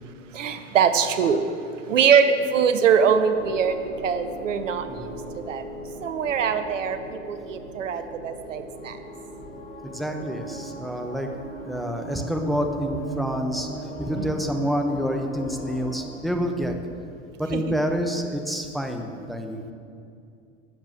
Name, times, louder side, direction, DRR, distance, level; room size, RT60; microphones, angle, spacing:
voice 1, 0.4-1.4 1.9-2.3 2.5-3.8 4.0-4.8 5.5-5.6 6.0-7.0 7.3-8.9 14.1-14.3 17.5-17.6, right 7 dB, 75° right, 9 dB, 0.9 m, -22 dB
sound 1, 3.3-15.9, right 1 dB, 30° left, 3.0 m, -39 dB
voice 2, 9.9-11.3 11.6-13.7 14.0-16.8 17.4-19.6, equal, ahead, 3 dB, 1.2 m, -28 dB
sound 2, 12.8-16.3, right 5 dB, 50° right, 3.0 m, -42 dB
12.5 x 7.4 x 7.3 m, 2.4 s
figure-of-eight pair, 80°, 38 cm